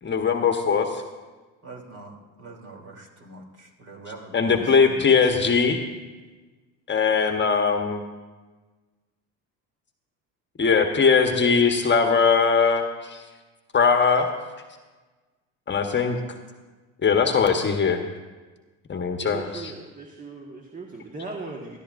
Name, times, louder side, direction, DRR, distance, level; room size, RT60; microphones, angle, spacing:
voice 1, 0.0-1.0 4.3-5.8 6.9-8.0 10.6-13.2 13.7-14.3 15.7-16.2 17.0-18.0 18.9-19.7, left 5 dB, 30° left, 4 dB, 1.2 m, -20 dB
voice 2, 1.6-5.1, right 2 dB, 40° right, 0 dB, 3.1 m, -43 dB
voice 3, 19.2-21.8, right 3 dB, 20° right, 0 dB, 1.5 m, -38 dB
18.5 x 13.0 x 2.6 m, 1.3 s
supercardioid pair, 75°, 36 cm